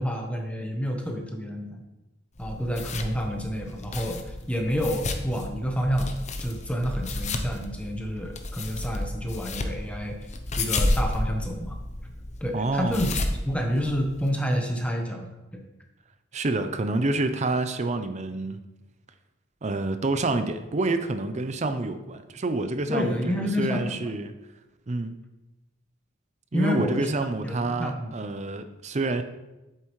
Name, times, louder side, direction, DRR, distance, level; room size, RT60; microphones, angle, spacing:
voice 1, 0.0-1.8 2.4-6.1 6.4-10.2 10.6-11.8 12.4-15.6 22.9-24.1 26.5-27.1 27.4-28.1, equal, 5° left, 2 dB, 1.0 m, -29 dB
sound 1, 2.4-14.3, left 2 dB, 35° left, 0.7 m, -32 dB
voice 2, 12.5-13.1 16.3-18.6 19.6-24.3 24.9-25.2 26.5-29.2, right 2 dB, 35° right, 9 dB, 0.6 m, -28 dB
8.3 x 7.7 x 3.2 m, 1.0 s
head